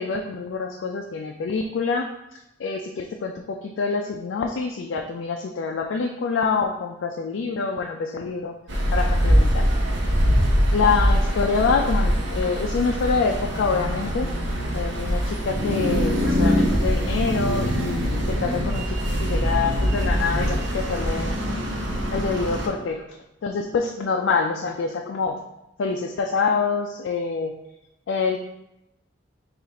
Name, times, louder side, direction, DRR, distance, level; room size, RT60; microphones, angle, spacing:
voice 1, 0.0-8.5 8.9-9.6 10.7-14.3 14.7-21.3 22.1-25.4 25.8-27.5 28.1-28.4, left 5 dB, 80° left, 2 dB, 0.4 m, -26 dB
sound 1, 8.7-22.7, equal, 75° right, 0.8 m, -23 dB
3.9 x 2.5 x 4.0 m, 0.87 s
head